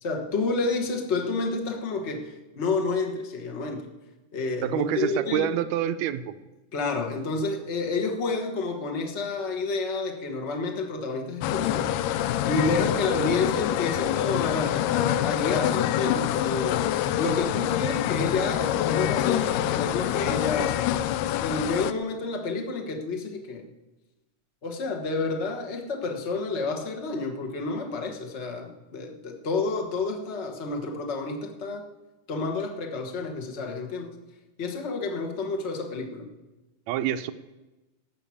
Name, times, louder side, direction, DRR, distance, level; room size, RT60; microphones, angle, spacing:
voice 1, 0.0-3.9 4.3-5.5 6.7-16.9 17.2-20.9 21.4-23.7 24.6-31.8 32.3-34.1 34.6-36.3, left 3 dB, 70° left, 2 dB, 0.6 m, -30 dB
voice 2, 4.6-6.3 36.9-37.3, right 11 dB, 75° right, 11 dB, 1.7 m, -27 dB
sound 1, 11.4-21.9, left 12 dB, 85° left, 2.2 m, -26 dB
16.0 x 6.1 x 8.4 m, 1.0 s
omnidirectional pair, 3.7 m